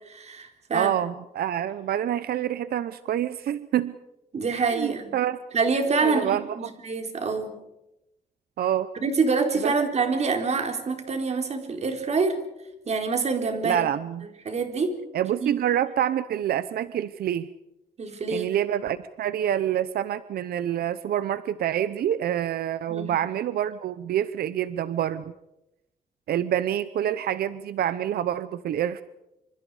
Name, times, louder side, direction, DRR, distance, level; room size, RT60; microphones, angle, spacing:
voice 1, 0.0-0.9 4.3-5.1 5.5-6.4 6.8-7.5 9.0-12.4 12.9-13.8 14.5-15.0 15.4-15.5 18.0-18.5 22.9-23.1, right 4 dB, 45° right, 5 dB, 4.0 m, -26 dB
voice 2, 0.7-3.9 4.5-5.4 6.0-6.7 8.6-8.9 9.6-9.7 13.6-14.3 15.1-17.5 18.3-25.2 26.3-29.0, right 10 dB, 90° right, 14 dB, 0.8 m, -27 dB
27.0 x 26.5 x 4.9 m, 0.90 s
wide cardioid pair, 130°, 15 cm